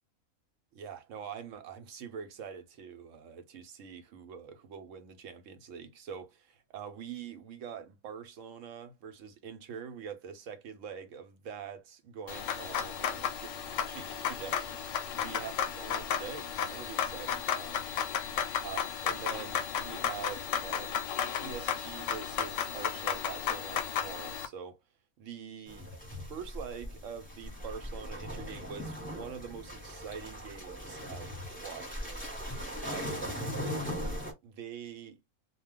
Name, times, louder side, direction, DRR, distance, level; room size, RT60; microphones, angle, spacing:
voice 1, 0.7-14.7 15.2-17.8 18.6-20.9 21.3-24.8 25.2-25.9 26.3-33.8 34.1-34.2 34.4-35.2, right 7 dB, 65° right, 0.9 m, -44 dB
sound 1, 12.3-24.5, left 8 dB, 70° left, 0.8 m, -34 dB
sound 2, 25.7-34.3, equal, 5° left, 0.9 m, -39 dB
2.3 x 2.2 x 3.4 m
omnidirectional pair, 1.5 m